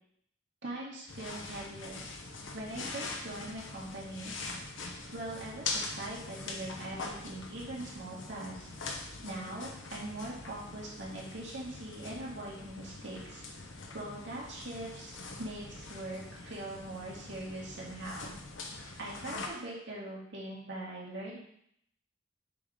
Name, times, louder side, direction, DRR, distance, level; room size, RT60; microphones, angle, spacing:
voice 1, 0.6-2.1 2.5-4.3 5.1-8.8 9.2-13.4 13.9-15.1 15.4-18.3 19.0-21.4, right 1 dB, 65° right, -5 dB, 2.2 m, -42 dB
sound 1, 1.1-19.5, left 3 dB, 75° left, 0.9 m, -43 dB
6.9 x 4.0 x 4.9 m, 0.69 s
head